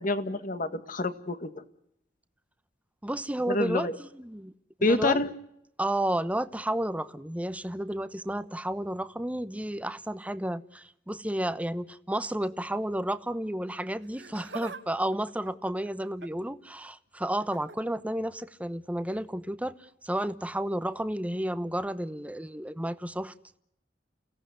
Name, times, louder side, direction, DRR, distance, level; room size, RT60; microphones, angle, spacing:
voice 1, 0.0-1.6 3.5-4.0 4.8-5.3, left 2 dB, 50° left, 1.9 m, -27 dB
voice 2, 3.0-3.9 4.2-4.5 4.8-5.2 5.8-19.8 20.0-23.6, right 1 dB, 10° right, 1.0 m, -32 dB
Laughter, 14.0-14.8 15.1-16.5 17.4-17.8 19.1-19.3 20.2-20.3, right 4 dB, 80° right, 1.8 m, -44 dB
29.5 x 17.5 x 9.6 m
head